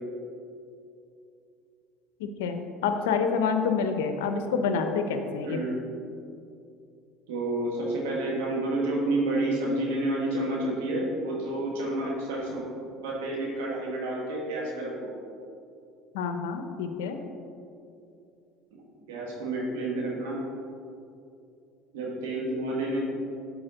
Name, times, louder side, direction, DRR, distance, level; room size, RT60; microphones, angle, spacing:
voice 1, 2.2-5.6 16.1-17.2, left 5 dB, 90° left, 7 dB, 0.5 m, -28 dB
voice 2, 5.4-5.8 7.3-12.6 13.0-15.1 19.1-20.4 21.9-23.0, right 2 dB, 90° right, -4 dB, 1.4 m, -29 dB
8.8 x 4.2 x 3.9 m, 2.6 s
supercardioid pair, 95°, 0 cm